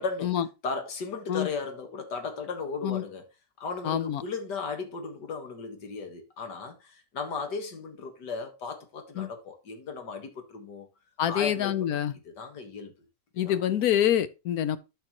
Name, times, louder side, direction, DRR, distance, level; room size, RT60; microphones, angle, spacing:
voice 1, 0.0-0.3 0.6-3.2 3.6-10.9 11.3-11.8 12.3-12.9 13.4-13.5, left 4 dB, 85° left, 2.2 m, -36 dB
voice 2, 3.8-4.2 9.2-9.3 11.2-12.1 13.4-14.8, left 10 dB, 70° left, 1.1 m, -26 dB
12.5 x 5.4 x 3.0 m
omnidirectional pair, 1.8 m